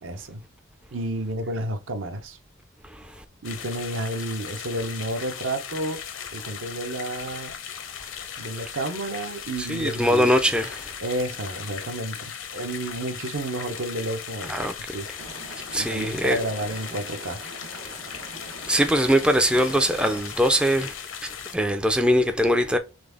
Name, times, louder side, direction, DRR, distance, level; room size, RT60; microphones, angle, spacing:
voice 1, 0.0-0.4 0.9-2.4 3.4-6.0 6.3-7.5 8.4-10.3 11.0-15.1 15.7-17.4, right 1 dB, 70° right, 0.7 m, -31 dB
sound 1, 3.4-21.6, left 8 dB, 70° left, 0.7 m, -38 dB
voice 2, 9.6-10.9 14.5-14.7 15.7-16.4 18.7-20.9 21.2-22.8, equal, 5° right, 0.3 m, -22 dB
Liquid, 15.2-20.2, right 3 dB, 90° right, 1.1 m, -43 dB
3.9 x 3.4 x 3.4 m
head